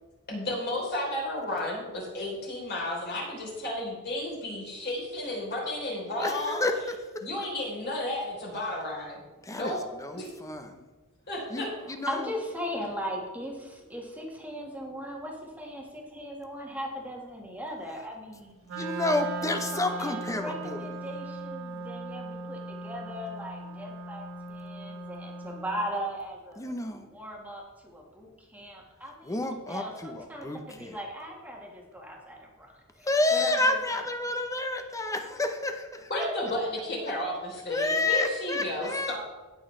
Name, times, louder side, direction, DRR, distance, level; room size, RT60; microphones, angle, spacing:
voice 1, 0.3-6.6 7.2-9.2 9.5-9.8 10.1-10.3 11.3-11.7 36.1-39.2, left 1 dB, 50° left, -3 dB, 3.5 m, -32 dB
voice 2, 6.2-7.2 9.4-10.9 11.5-12.3 18.8-20.9 26.6-27.1 29.2-31.0 33.0-36.1 37.0-37.1 37.7-39.2, left 2 dB, 15° left, 6 dB, 0.7 m, -30 dB
voice 3, 12.1-18.7 19.4-26.8 27.1-29.4 29.7-34.0, equal, 5° right, -1 dB, 1.5 m, -38 dB
Wind instrument woodwind instrument, 18.6-25.8, right 2 dB, 65° right, 2.0 m, -38 dB
17.0 x 6.2 x 3.2 m, 1.2 s
head